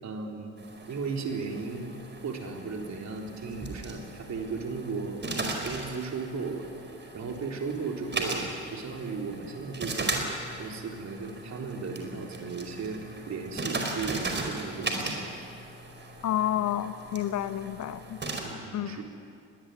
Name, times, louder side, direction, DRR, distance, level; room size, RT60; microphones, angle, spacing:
voice 1, 0.0-0.5 0.9-5.2 5.6-6.7 7.1-10.2 10.6-15.2 18.4-19.1, right 4 dB, 45° right, 1 dB, 4.0 m, -36 dB
sound 1, 0.6-18.4, right 2 dB, 30° right, 4.9 m, -37 dB
voice 2, 16.2-18.2 18.7-19.0, left 11 dB, 45° left, 13 dB, 1.0 m, -30 dB
22.0 x 20.5 x 9.7 m, 2.6 s
figure-of-eight pair, 45°, 38 cm